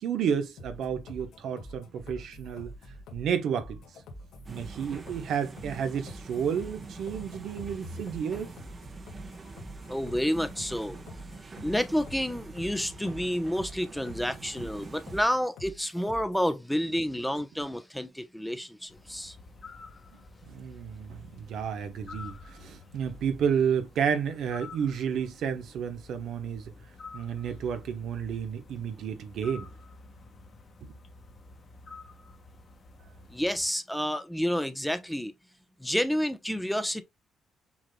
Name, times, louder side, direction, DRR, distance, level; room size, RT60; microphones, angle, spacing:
voice 1, 0.0-2.7 3.1-3.8 4.5-8.5 20.1-20.2 20.5-26.7 27.1-29.7 30.8-31.0, right 7 dB, 75° right, 0.9 m, -31 dB
sound 1, 0.6-16.5, left 1 dB, 85° left, 1.5 m, -46 dB
sound 2, 4.4-15.2, right 4 dB, 35° right, 1.0 m, -45 dB
voice 2, 9.9-11.0 11.6-19.3 33.3-35.3 35.8-37.0, equal, 5° left, 0.7 m, -29 dB
sound 3, 18.9-33.7, left 3 dB, 50° left, 1.4 m, -49 dB
6.1 x 3.9 x 2.2 m
cardioid pair, 90°, 0 cm